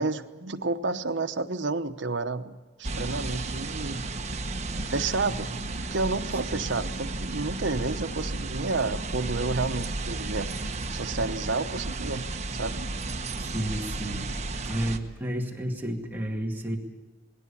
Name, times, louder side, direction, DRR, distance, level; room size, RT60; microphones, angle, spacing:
voice 1, 0.0-4.0 4.9-5.6 5.9-10.5 10.9-12.3 12.5-12.8, right 3 dB, 70° right, 7 dB, 1.0 m, -30 dB
sound 1, 2.8-15.0, right 2 dB, 35° right, 1.2 m, -33 dB
voice 2, 13.4-14.3 14.6-16.8, equal, 10° right, -1 dB, 2.3 m, -31 dB
21.0 x 17.0 x 8.5 m, 1.2 s
head